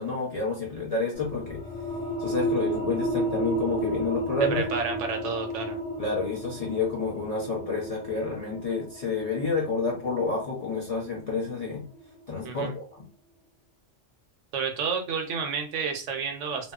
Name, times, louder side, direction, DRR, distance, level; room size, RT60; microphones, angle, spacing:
voice 1, 0.0-1.6 2.2-4.7 6.0-11.9 12.3-13.0, left 3 dB, 40° left, -4 dB, 0.6 m, -29 dB
sound 1, 1.1-12.4, equal, 70° left, 1.2 m, -33 dB
voice 2, 4.5-5.8 12.4-12.7 14.5-16.7, right 5 dB, 75° right, 4 dB, 0.9 m, -30 dB
2.8 x 2.1 x 2.3 m, 0.36 s
omnidirectional pair, 1.3 m